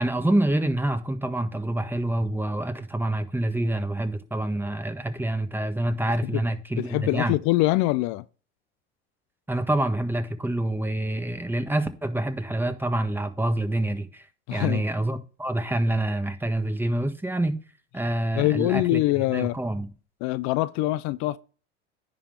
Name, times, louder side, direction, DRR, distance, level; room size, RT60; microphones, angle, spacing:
voice 1, 0.0-7.3 9.5-17.6 17.9-19.0 19.3-19.9, right 1 dB, 5° right, 1.4 m, -27 dB
voice 2, 6.8-8.2 14.5-14.8 18.4-19.6 20.2-21.4, left 18 dB, 65° left, 0.5 m, -24 dB
10.0 x 3.9 x 6.6 m
hypercardioid pair, 85°, 32 cm